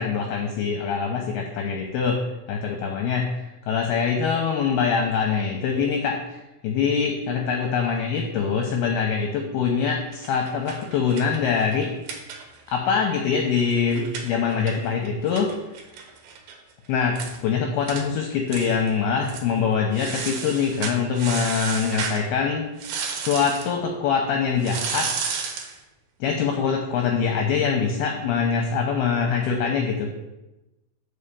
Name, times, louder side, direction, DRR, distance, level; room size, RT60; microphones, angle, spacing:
voice 1, 0.0-11.9 12.7-15.5 16.9-22.7 23.2-25.1 26.2-30.1, left 6 dB, 80° left, 2 dB, 2.4 m, -24 dB
sound 1, 10.1-12.8 13.1-13.2 13.4-16.6 16.9-17.0 17.2-17.4 17.9-18.1 18.5-18.9 19.2-19.5 19.9-22.2 22.8-23.7 24.6-25.8, right 6 dB, 75° right, 2.4 m, -33 dB
5.6 x 5.3 x 6.7 m, 1.0 s
omnidirectional pair, 5.1 m